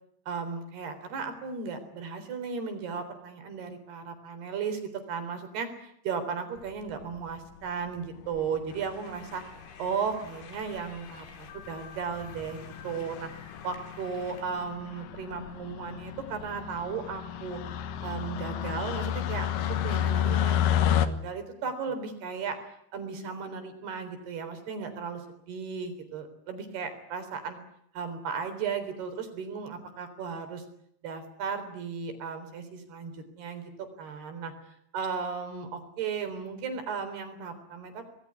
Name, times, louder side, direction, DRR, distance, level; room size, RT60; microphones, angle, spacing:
voice 1, 0.3-9.4 9.8-13.3 13.6-17.6 18.0-20.6 20.9-22.6 22.9-25.2 25.5-27.6 27.9-30.6 31.0-34.5 34.9-38.1, right 6 dB, 60° right, 9 dB, 5.7 m, -35 dB
sound 1, 6.9-7.4 8.3-8.8 9.6-9.7 9.9-10.0 10.3-10.4 10.7-11.0 11.4-11.7 11.9-21.1, left 10 dB, 65° left, 2.5 m, -31 dB
sound 2, 8.7-14.4, left 6 dB, 80° left, 5.6 m, -49 dB
26.5 x 20.5 x 9.7 m, 0.72 s
omnidirectional pair, 5.2 m